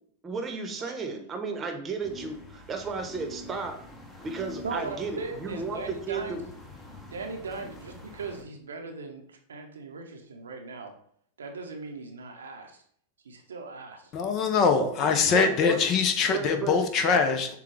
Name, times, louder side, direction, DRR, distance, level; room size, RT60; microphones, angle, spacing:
voice 1, 0.2-3.8 4.2-6.4 14.8-15.8 16.3-16.8, right 4 dB, 25° right, 4 dB, 0.9 m, -34 dB
sound 1, 2.0-8.4, left 1 dB, 10° left, 0.9 m, -46 dB
voice 2, 4.6-6.4 7.1-10.9 11.4-12.8 13.2-14.1, right 4 dB, 80° right, 4 dB, 0.7 m, -39 dB
voice 3, 14.1-17.6, left 5 dB, 40° left, 7 dB, 0.7 m, -23 dB
6.8 x 2.3 x 3.3 m, 0.64 s
hypercardioid pair, 95°, 0 cm